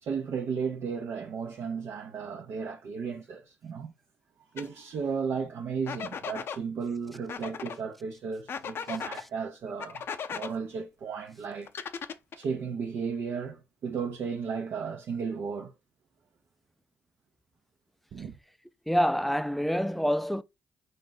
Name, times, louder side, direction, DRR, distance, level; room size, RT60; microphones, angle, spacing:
voice 1, 0.0-3.9 4.5-10.0 10.3-11.7 12.4-15.7 18.1-18.3, right 6 dB, 70° right, 0.7 m, -34 dB
sound 1, 4.6-4.7 5.9-6.6 7.3-7.8 8.5-9.2 9.8-10.5 11.7-12.4, left 7 dB, 60° left, 0.5 m, -37 dB
voice 2, 18.9-20.4, equal, 5° left, 0.4 m, -26 dB
4.4 x 2.5 x 4.0 m
supercardioid pair, 55°, 5 cm